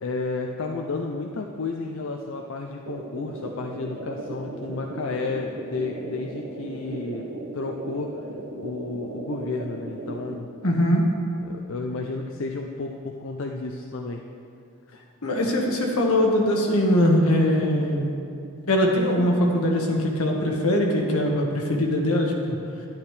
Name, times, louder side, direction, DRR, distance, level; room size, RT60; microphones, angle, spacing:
voice 1, 0.0-7.3 7.5-8.1 8.6-10.5 11.4-14.2, left 3 dB, 60° left, 2 dB, 0.5 m, -32 dB
sound 1, 2.9-10.4, right 2 dB, 50° right, 1.0 m, -36 dB
voice 2, 10.6-11.1 15.2-18.1 18.7-22.5, left 1 dB, 80° left, 0 dB, 1.5 m, -21 dB
11.5 x 10.5 x 3.3 m, 2.5 s
head